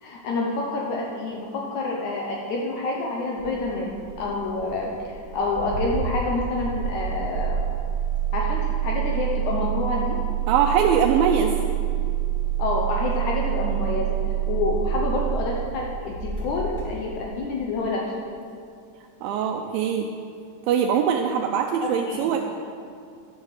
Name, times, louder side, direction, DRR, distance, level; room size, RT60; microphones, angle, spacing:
voice 1, 0.0-7.6 8.3-10.2 12.6-14.2 14.5-18.1 21.8-22.4, left 3 dB, 85° left, -1 dB, 1.6 m, -28 dB
Engine starting, 3.4-17.5, right 10 dB, 30° left, 3.3 m, -27 dB
voice 2, 10.5-11.6 19.2-20.1 20.7-22.4, right 7 dB, 85° right, 3 dB, 2.1 m, -22 dB
11.0 x 8.9 x 6.6 m, 2.3 s
omnidirectional pair, 4.8 m